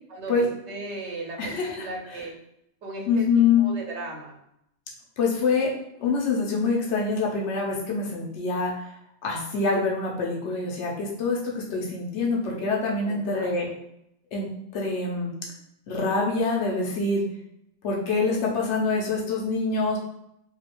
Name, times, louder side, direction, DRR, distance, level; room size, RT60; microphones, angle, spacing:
voice 1, 0.1-2.3 2.8-3.3 3.6-4.4 13.1-13.7, right 2 dB, 80° right, 0 dB, 1.0 m, -37 dB
voice 2, 1.4-1.9 3.1-3.7 5.2-5.7 6.0-8.7 9.2-13.7 14.3-15.3 15.9-17.2 17.8-20.0, left 4 dB, 85° left, -2 dB, 1.0 m, -25 dB
3.0 x 2.7 x 2.9 m, 0.79 s
omnidirectional pair, 1.2 m